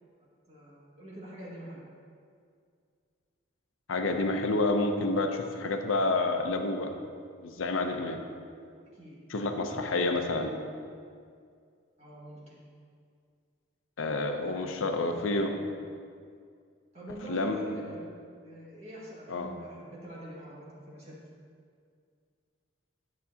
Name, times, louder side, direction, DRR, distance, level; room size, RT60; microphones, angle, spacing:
voice 1, 0.5-1.8 8.9-9.2 9.7-10.4 12.0-12.6 14.4-15.5 16.9-18.0 18.4-21.2, equal, 35° right, -7 dB, 1.9 m, -45 dB
voice 2, 3.9-6.9 7.4-8.2 9.3-10.5 14.0-15.5 17.3-17.6 19.3-19.5, left 2 dB, 85° left, 5 dB, 0.6 m, -29 dB
9.5 x 7.4 x 2.8 m, 2.2 s
head